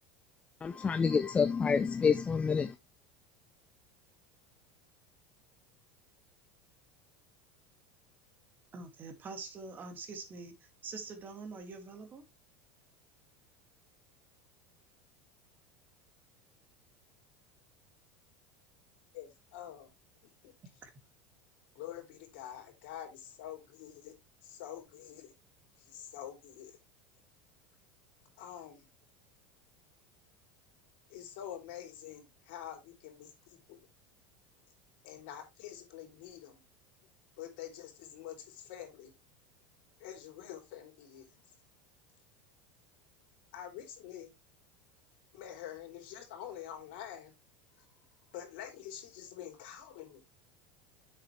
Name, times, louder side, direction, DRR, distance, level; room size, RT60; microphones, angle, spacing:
voice 1, 0.6-2.8, left 6 dB, 20° left, 0.5 m, -28 dB
voice 2, 8.7-10.5 10.8-12.2 20.8-20.9, right 4 dB, 35° right, 2.2 m, -44 dB
voice 3, 19.1-19.9 20.4-20.5 21.7-24.1 24.4-25.3 25.9-26.7 28.4-28.9 31.1-33.8 35.0-36.6 37.4-39.1 40.0-41.3 43.5-44.3 45.3-47.3 48.3-50.2, left 10 dB, 70° left, 3.2 m, -46 dB
7.6 x 6.7 x 3.2 m
supercardioid pair, 105°, 6 cm